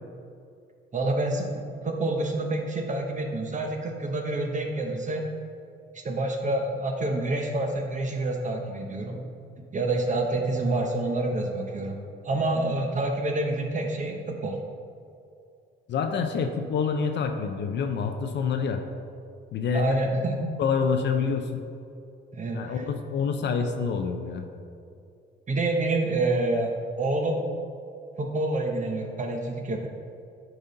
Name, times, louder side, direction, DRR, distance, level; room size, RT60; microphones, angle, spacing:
voice 1, 0.9-1.5 1.8-5.3 5.9-9.2 9.7-12.0 12.2-14.6 19.7-20.5 22.3-22.8 25.5-27.5 28.2-29.9, right 2 dB, 40° right, 2 dB, 0.9 m, -27 dB
voice 2, 15.9-18.8 19.5-20.0 20.6-21.6 22.5-24.5, left 5 dB, 65° left, 6 dB, 0.6 m, -27 dB
8.8 x 4.2 x 3.9 m, 2.5 s
cardioid pair, 90°, 20 cm